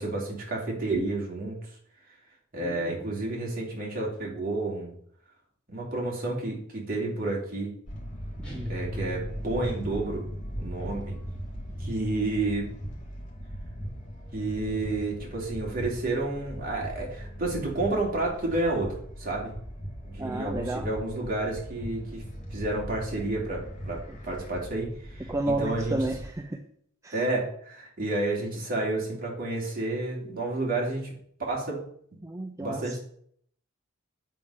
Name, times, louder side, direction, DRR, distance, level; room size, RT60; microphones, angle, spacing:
voice 1, 0.0-1.6 2.5-4.9 5.7-7.7 8.6-10.3 10.6-11.2 11.8-12.7 14.3-19.5 20.0-22.2 22.5-26.0 27.1-31.1 31.5-31.8 32.6-33.0, right 2 dB, 45° right, -3 dB, 2.7 m, -30 dB
voice 2, 2.6-3.1 8.4-8.7 20.2-20.9 24.1-24.2 25.3-26.6 27.0-27.2 32.2-33.0, right 2 dB, 15° right, 3 dB, 0.5 m, -32 dB
sound 1, 7.8-26.3, equal, 40° left, 1.9 m, -39 dB
sound 2, 8.4-10.1, left 1 dB, 5° left, 3.0 m, -39 dB
7.6 x 4.9 x 5.6 m, 0.64 s
head